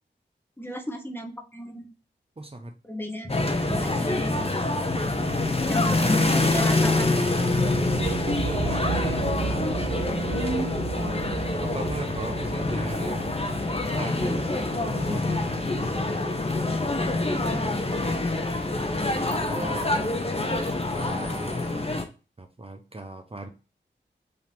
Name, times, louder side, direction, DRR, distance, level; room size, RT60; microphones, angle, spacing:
voice 1, 0.6-1.9 2.9-4.7 5.7-7.2 10.3-10.7, equal, 10° left, 3 dB, 1.1 m, -34 dB
voice 2, 2.4-2.7 3.7-4.2 5.4-6.1 7.7-9.3 11.6-13.3 14.0-15.6 16.8-18.0 19.5-20.1 20.9-21.9 22.4-23.5, right 2 dB, 30° right, 5 dB, 0.8 m, -38 dB
sound 1, 3.3-22.0, left 2 dB, 30° left, 1.0 m, -26 dB
sound 2, 6.5-16.5, right 5 dB, 85° right, 0.5 m, -35 dB
sound 3, 9.1-21.4, left 2 dB, 80° left, 2.2 m, -42 dB
5.3 x 2.9 x 3.4 m, 0.31 s
cardioid pair, 45°, 20 cm